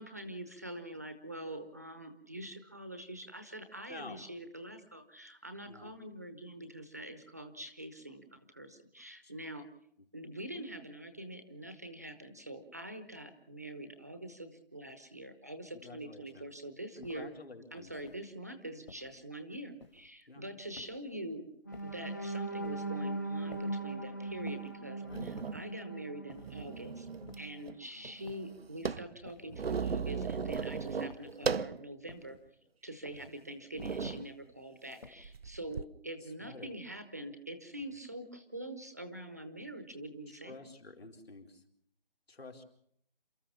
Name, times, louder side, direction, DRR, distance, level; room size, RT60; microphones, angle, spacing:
voice 1, 0.0-9.7 10.1-17.3 17.7-21.5 21.8-27.1 27.4-32.4 32.8-40.6, right 1 dB, 15° right, 9 dB, 0.9 m, -45 dB
voice 2, 15.7-16.5 17.0-17.9 20.3-20.4 25.0-25.3 31.2-31.5 33.2-33.3 36.4-36.7 40.4-41.6 42.3-42.6, left 3 dB, 90° left, 3 dB, 4.4 m, -50 dB
sound 1, 17.0-17.4 17.9-18.3 18.9-19.2 19.8-20.2 20.7-21.2 21.7-22.1 22.6-23.0 23.5-23.9 24.5-24.8 25.4-25.7 26.3-26.7 27.3-27.7 28.3-28.6 29.2-29.7 30.2-30.6 31.1-31.5 32.1-32.5 33.0-33.4 34.0-34.4 35.0-35.4, left 3 dB, 45° left, 2.1 m, -55 dB
sound 2, 21.6-27.6 28.1-28.2 28.6-28.8, right 2 dB, 20° left, 0.7 m, -40 dB
sound 3, 24.4-24.5 25.1-25.7 26.3-27.4 27.7-27.8 28.0-31.8 32.3-32.4 33.1-33.3 33.7-34.3 35.2-35.8, right 5 dB, 85° right, 0.8 m, -36 dB
29.0 x 14.0 x 7.2 m, 0.70 s
figure-of-eight pair, 175°, 30 cm